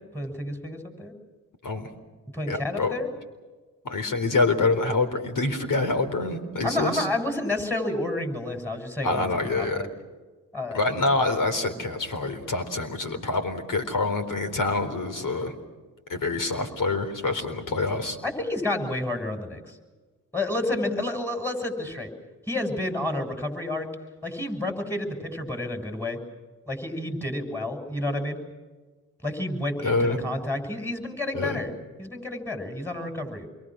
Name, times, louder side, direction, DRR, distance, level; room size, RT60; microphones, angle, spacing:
voice 1, 0.1-1.1 2.3-3.1 6.6-9.9 10.5-10.8 18.2-19.8 20.3-22.1 22.5-23.9 24.2-26.2 26.7-28.4 29.2-31.7 32.0-33.5, left 2 dB, 5° left, 5 dB, 7.3 m, -30 dB
voice 2, 2.5-2.9 3.8-7.1 9.0-9.8 10.7-15.5 16.1-18.2 29.8-30.2 31.3-31.6, left 3 dB, 55° left, 8 dB, 4.2 m, -26 dB
28.0 x 23.0 x 6.4 m, 1.3 s
supercardioid pair, 50°, 37 cm